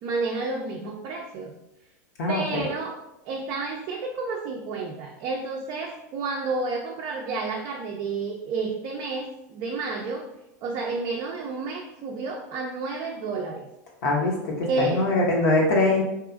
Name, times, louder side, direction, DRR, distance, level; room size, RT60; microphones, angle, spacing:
voice 1, 0.0-1.5 2.3-3.0 3.3-10.3 10.6-13.7 14.6-15.1, right 3 dB, 45° right, 0 dB, 0.4 m, -30 dB
voice 2, 2.2-2.7 14.0-16.0, left 2 dB, 70° left, -2 dB, 0.7 m, -23 dB
2.9 x 2.3 x 2.4 m, 0.87 s
hypercardioid pair, 100°, 10 cm